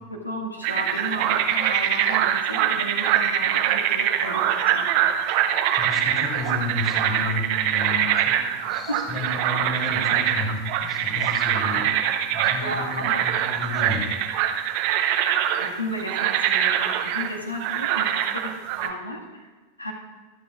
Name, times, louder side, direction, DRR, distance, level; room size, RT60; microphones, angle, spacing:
voice 1, 0.1-4.9 8.9-9.1 12.6-13.3 15.6-18.5 18.8-19.5 19.8-19.9, equal, 80° left, 0 dB, 1.8 m, -33 dB
sound 1, 0.6-18.9, right 10 dB, 45° right, 0.8 m, -23 dB
voice 2, 5.7-11.9 12.3-14.1, left 2 dB, 25° left, 0 dB, 3.6 m, -32 dB
24.5 x 9.0 x 2.4 m, 1.3 s
figure-of-eight pair, 90°, 0 cm